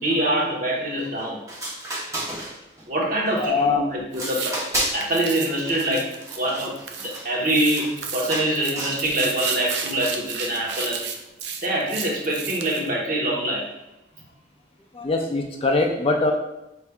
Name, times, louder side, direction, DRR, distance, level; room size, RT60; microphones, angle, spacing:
voice 1, 0.0-1.5 2.9-4.6 4.9-11.2 11.6-13.7, right 1 dB, 45° right, -4 dB, 1.1 m, -25 dB
sound 1, 1.2-1.3 1.5-2.8 3.3-3.7 4.1-5.1 5.4-8.0 8.3-9.1 9.4-9.9 10.7-11.0, right 1 dB, 15° right, 1.0 m, -32 dB
voice 2, 3.4-3.8 14.9-16.3, left 3 dB, 30° left, 2 dB, 0.4 m, -22 dB
sound 2, 4.1-4.5 5.0-7.2 7.4-12.9, right 6 dB, 70° right, 0.5 m, -33 dB
6.0 x 3.3 x 2.3 m, 0.92 s
head